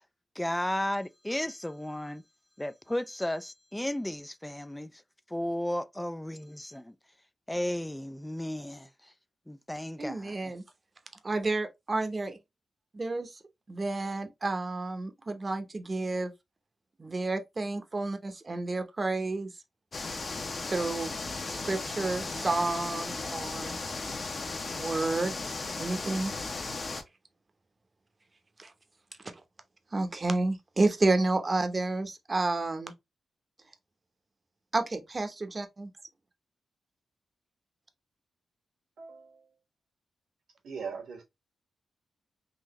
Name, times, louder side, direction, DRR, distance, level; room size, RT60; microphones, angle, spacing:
voice 1, 0.4-2.2 2.6-5.0 5.3-6.9 7.5-9.1 9.5-10.5, left 1 dB, 10° left, 0.3 m, -34 dB
voice 2, 10.0-10.6 11.2-12.4 12.9-13.3 13.7-16.3 17.0-19.5 20.7-21.1 21.5-23.7 24.7-25.3 25.8-26.3 28.6-28.7 29.9-32.9 34.7-35.9, right 2 dB, 35° right, 0.8 m, -30 dB
sound 1, 19.9-27.0, left 3 dB, 45° left, 0.8 m, -36 dB
voice 3, 39.0-39.5 40.6-41.2, right 5 dB, 85° right, 1.5 m, -40 dB
3.9 x 2.6 x 3.0 m
cardioid pair, 75°, 0 cm